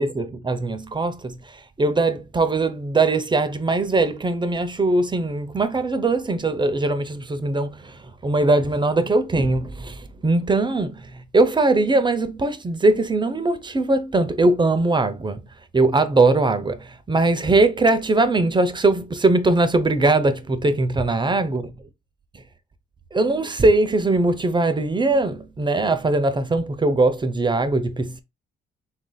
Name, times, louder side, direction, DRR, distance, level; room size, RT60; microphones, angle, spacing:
voice 1, 0.0-15.4 15.7-21.6 23.1-28.2, right 2 dB, 25° right, 0.5 m, -21 dB
3.7 x 2.5 x 3.8 m
cardioid pair, 90°, 20 cm